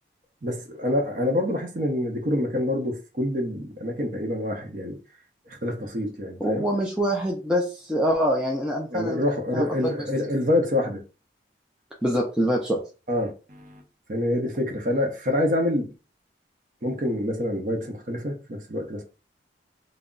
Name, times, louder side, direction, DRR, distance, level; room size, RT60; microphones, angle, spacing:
voice 1, 0.4-5.0 5.5-6.7 8.9-11.0 13.1-13.8 14.1-15.9 16.8-19.0, left 1 dB, 45° right, 0.6 m, -26 dB
voice 2, 6.4-9.2 9.5-10.0 12.0-12.8, equal, 5° right, 0.3 m, -25 dB
2.2 x 2.0 x 3.7 m
head